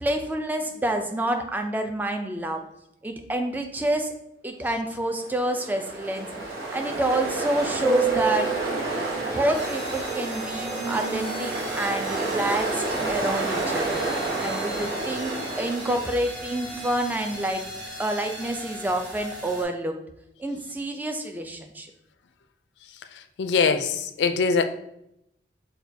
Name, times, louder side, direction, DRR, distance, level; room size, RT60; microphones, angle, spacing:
voice 1, 0.0-2.6 3.0-4.1 4.4-6.3 6.7-8.5 9.2-14.0 14.4-17.6 18.0-20.0 20.4-21.9, right 1 dB, 10° right, 4 dB, 0.3 m, -28 dB
Ocean, 5.2-16.3, right 2 dB, 55° right, 1.0 m, -29 dB
sound 1, 9.5-19.6, equal, 75° right, 1.2 m, -38 dB
voice 2, 23.4-24.7, left 5 dB, 75° left, 9 dB, 0.4 m, -22 dB
6.2 x 2.3 x 2.7 m, 0.80 s
head